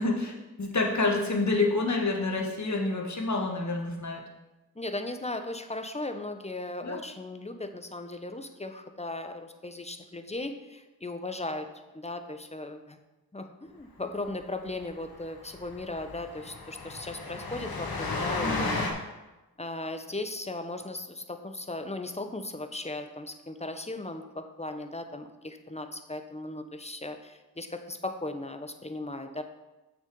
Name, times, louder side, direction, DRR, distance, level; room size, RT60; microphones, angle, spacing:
voice 1, 0.0-4.2 6.8-7.0 18.4-18.8, left 3 dB, 45° left, 0 dB, 2.0 m, -28 dB
voice 2, 4.8-11.7 11.9-13.0 13.3-18.8 19.6-29.4, left 2 dB, 15° left, 7 dB, 1.0 m, -37 dB
Train, 14.3-14.4 14.7-14.8 15.1-15.2 15.5-18.9, left 3 dB, 65° left, 1.5 m, -34 dB
6.9 x 6.7 x 5.3 m, 1.1 s
cardioid pair, 50°, 39 cm